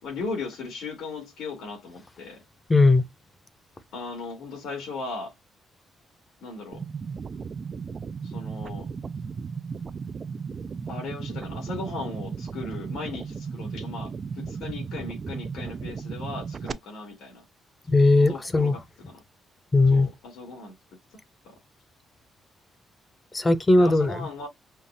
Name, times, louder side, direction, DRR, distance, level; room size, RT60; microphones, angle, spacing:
voice 1, 0.0-2.4 3.9-5.3 6.4-6.8 8.2-8.9 10.9-17.4 18.3-18.8 19.1-19.2 19.9-20.7 21.4-21.6 23.7-24.5, left 3 dB, 80° left, 3.3 m, -37 dB
voice 2, 2.7-3.0 17.9-18.8 19.7-20.1 23.3-24.3, left 2 dB, 25° left, 0.8 m, -18 dB
sound 1, 6.7-16.7, right 5 dB, 40° right, 0.4 m, -35 dB
5.6 x 2.3 x 2.7 m
cardioid pair, 90°, 0 cm